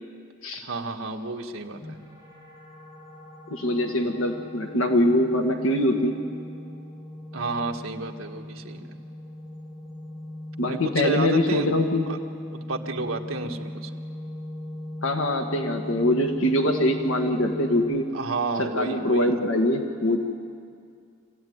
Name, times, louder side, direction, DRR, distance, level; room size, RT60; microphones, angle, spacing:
voice 1, 0.6-2.0 7.3-9.0 10.7-11.7 12.1-12.2 12.5-13.9 18.1-19.4, right 3 dB, 85° right, 2 dB, 1.6 m, -31 dB
sound 1, 1.8-17.8, left 1 dB, 15° left, 7.9 m, -39 dB
voice 2, 3.5-6.2 10.6-12.1 15.0-18.1 18.6-20.2, left 1 dB, 75° left, 3 dB, 1.6 m, -23 dB
25.5 x 15.5 x 9.5 m, 2.2 s
head